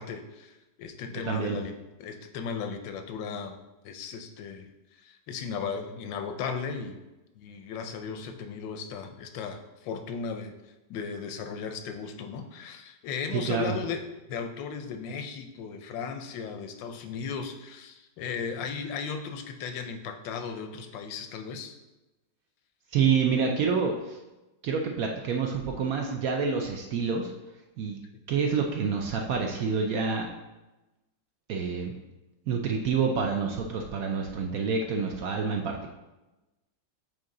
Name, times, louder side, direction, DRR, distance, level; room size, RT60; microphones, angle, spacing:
voice 1, 0.0-1.7 2.0-3.6 3.8-4.7 5.0-7.0 7.4-21.8, left 6 dB, 90° left, 7 dB, 1.3 m, -36 dB
voice 2, 1.2-1.6 13.3-13.8 22.9-24.2 24.6-27.3 27.8-28.0 28.3-30.3 31.5-31.9 32.5-35.9, right 5 dB, 70° right, 2 dB, 0.9 m, -27 dB
8.5 x 3.1 x 3.8 m, 1.0 s
omnidirectional pair, 1.9 m